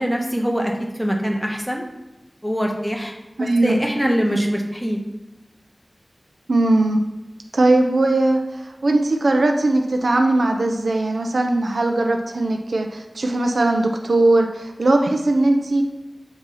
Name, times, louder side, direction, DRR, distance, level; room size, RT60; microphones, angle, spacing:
voice 1, 0.0-1.8 2.4-3.1 3.4-5.0, equal, ahead, 0 dB, 1.1 m, -23 dB
voice 2, 3.4-3.7 6.5-7.0 7.5-15.8, right 2 dB, 85° right, 4 dB, 0.5 m, -19 dB
7.9 x 2.8 x 5.6 m, 1.0 s
wide cardioid pair, 60°, 0 cm